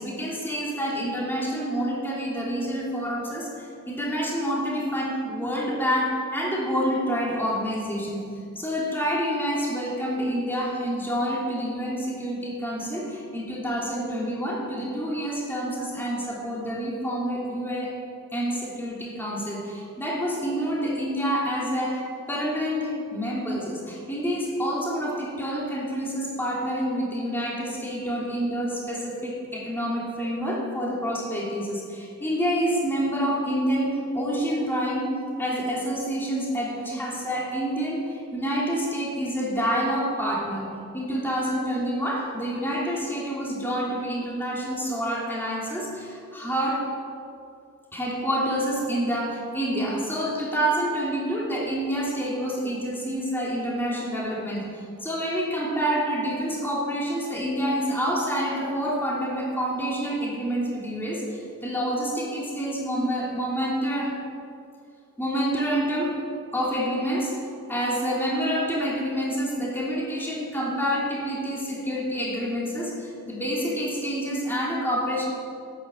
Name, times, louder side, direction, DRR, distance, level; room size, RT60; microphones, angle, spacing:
voice 1, 0.0-8.3 8.5-17.9 18.3-35.1 35.4-46.9 47.9-64.2 65.2-66.2 66.5-67.3 67.7-75.2, equal, 10° left, -4 dB, 3.1 m, -28 dB
13.0 x 10.5 x 7.7 m, 2.4 s
head